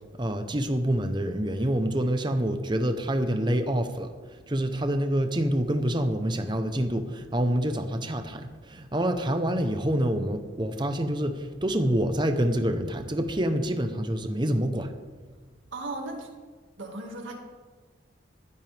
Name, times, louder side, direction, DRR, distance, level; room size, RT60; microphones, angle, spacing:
voice 1, 0.2-4.1 4.5-14.9, right 1 dB, 25° right, 7 dB, 0.9 m, -27 dB
voice 2, 15.7-16.3 16.8-17.4, right 2 dB, 90° right, 1 dB, 2.1 m, -36 dB
15.5 x 12.0 x 3.5 m, 1.5 s
head